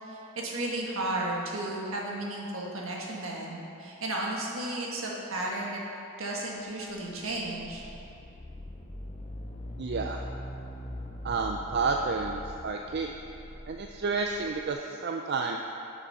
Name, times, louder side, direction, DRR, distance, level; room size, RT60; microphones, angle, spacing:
voice 1, 0.0-5.8 6.2-7.8, right 1 dB, 70° right, -3 dB, 1.6 m, -34 dB
sound 1, 6.7-14.7, left 1 dB, 30° left, 0.6 m, -42 dB
voice 2, 9.8-10.2 11.2-13.1 13.7-15.6, right 4 dB, 50° right, 2 dB, 0.4 m, -30 dB
7.1 x 6.9 x 5.7 m, 2.8 s
head